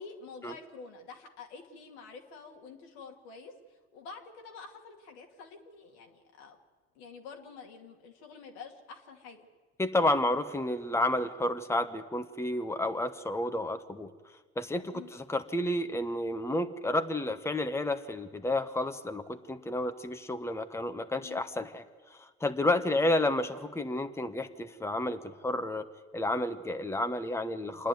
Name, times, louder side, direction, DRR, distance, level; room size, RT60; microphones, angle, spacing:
voice 1, 0.0-6.6 6.9-9.5 14.9-15.1 21.2-21.5 23.0-23.2, left 5 dB, 80° left, 2 dB, 2.4 m, -48 dB
voice 2, 9.8-14.1 14.6-21.8 22.2-25.9 26.1-27.9, left 1 dB, 10° left, 8 dB, 1.2 m, -31 dB
27.5 x 10.0 x 9.4 m, 1.4 s
hypercardioid pair, 65°, 33 cm